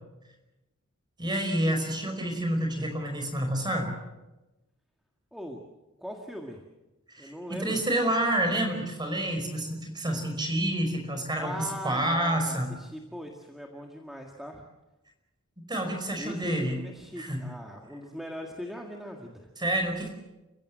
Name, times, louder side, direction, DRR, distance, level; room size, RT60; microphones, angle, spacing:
voice 1, 1.2-3.9 7.1-12.7 15.7-16.8 17.2-17.4 19.6-20.1, right 1 dB, 20° right, 4 dB, 5.2 m, -28 dB
voice 2, 5.3-5.6 6.0-6.6 7.2-7.8 11.4-14.6 16.1-19.5, equal, ahead, 1 dB, 1.8 m, -40 dB
30.0 x 16.0 x 7.5 m, 1.0 s
head